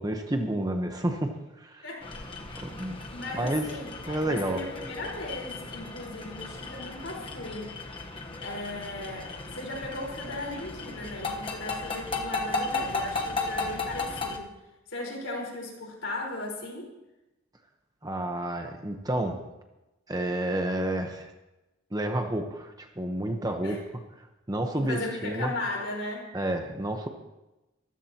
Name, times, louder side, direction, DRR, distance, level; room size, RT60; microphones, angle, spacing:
voice 1, 0.0-1.8 2.6-3.0 3.3-3.7 4.1-4.6 18.0-19.4 20.1-21.3 21.9-23.8 24.2-25.5 26.3-27.1, right 1 dB, 15° right, 4 dB, 1.0 m, -30 dB
sound 1, 2.0-14.4, left 3 dB, 25° left, 1.1 m, -35 dB
voice 2, 2.3-2.7 3.1-7.8 8.4-14.5 14.9-16.9 23.6-23.8 24.7-26.3, left 2 dB, 60° left, -1 dB, 4.5 m, -37 dB
24.0 x 15.0 x 2.9 m, 0.99 s
head